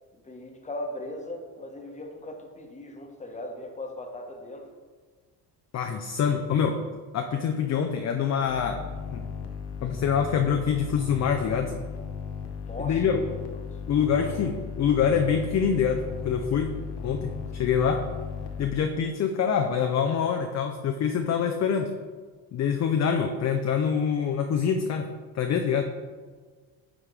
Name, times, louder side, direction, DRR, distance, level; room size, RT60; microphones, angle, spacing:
voice 1, 0.1-4.7 12.6-13.3 14.1-14.4 17.6-17.7, left 1 dB, 15° left, 2 dB, 1.0 m, -38 dB
voice 2, 5.7-6.8 7.1-8.8 9.1-9.3 9.8-11.7 12.8-13.2 13.9-16.8 17.0-18.1 18.6-21.9 22.5-25.8, left 7 dB, 35° left, 5 dB, 0.5 m, -25 dB
sound 1, 8.5-18.7, left 6 dB, 55° left, 0.8 m, -36 dB
9.7 x 3.6 x 3.2 m, 1.5 s
supercardioid pair, 85°, 47 cm